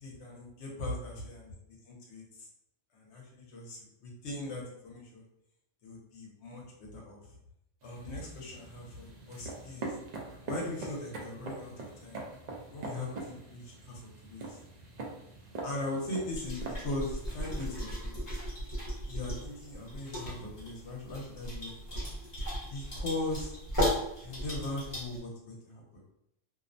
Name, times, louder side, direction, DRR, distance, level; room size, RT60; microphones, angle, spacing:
voice 1, 0.0-2.5 2.9-5.2 5.8-7.4 7.8-10.0 10.4-11.7 12.0-12.2 12.7-14.6 15.6-18.3 19.1-22.1 22.7-23.5 24.2-25.8, left 2 dB, 70° left, -1 dB, 0.9 m, -39 dB
sound 1, 7.8-17.7, right 3 dB, 55° right, 0.4 m, -43 dB
sound 2, 16.3-25.2, equal, 30° left, 0.8 m, -36 dB
2.6 x 2.0 x 2.5 m, 0.81 s
omnidirectional pair, 1.2 m